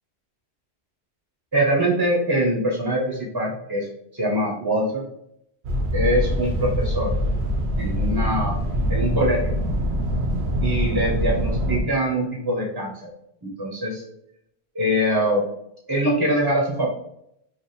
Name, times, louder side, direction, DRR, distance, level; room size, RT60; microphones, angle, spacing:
voice 1, 1.5-3.9 4.1-5.0 5.9-7.1 7.8-8.6 8.9-9.5 10.6-13.1 13.4-14.0 14.7-15.5 15.9-16.9, equal, 25° right, -2 dB, 0.5 m, -23 dB
sound 1, 5.6-11.8, equal, 75° right, 0.9 m, -24 dB
3.3 x 2.3 x 4.1 m, 0.77 s
omnidirectional pair, 1.1 m